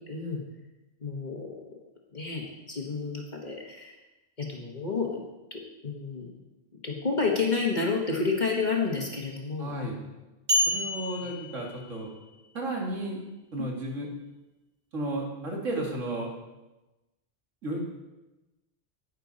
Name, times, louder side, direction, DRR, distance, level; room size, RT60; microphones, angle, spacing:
voice 1, 0.1-0.4 1.0-1.6 2.1-3.9 4.4-5.2 5.5-6.3 6.8-10.0 11.2-11.3, left 4 dB, 40° left, -1 dB, 1.4 m, -30 dB
voice 2, 9.6-10.0 10.7-12.1 12.5-13.2 13.5-14.1 14.9-16.3 17.6-17.8, right 1 dB, 80° right, -1 dB, 2.4 m, -33 dB
sound 1, 10.5-12.3, equal, 60° right, 2.5 m, -29 dB
10.0 x 9.3 x 4.0 m, 1.0 s
omnidirectional pair, 1.3 m